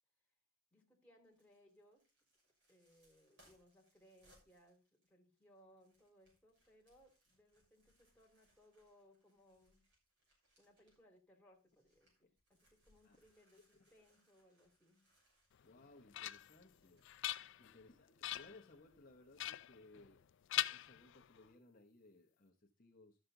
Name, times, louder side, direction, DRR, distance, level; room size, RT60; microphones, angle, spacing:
voice 1, 0.7-2.0 2.7-9.8 10.6-15.1 17.6-18.0, equal, 5° left, -1 dB, 2.7 m, -68 dB
sound 1, 1.2-11.2 11.5-17.6 17.9-18.0, equal, 60° right, 6.2 m, -76 dB
sound 2, 15.6-16.6 17.0-17.8 18.2-18.6 19.4-20.2 20.5-21.5, left 14 dB, 60° left, 0.4 m, -42 dB
voice 2, 15.6-17.0 17.6-20.2 20.7-23.2, left 2 dB, 40° left, 0 dB, 1.1 m, -62 dB
13.0 x 6.6 x 3.8 m, 0.31 s
head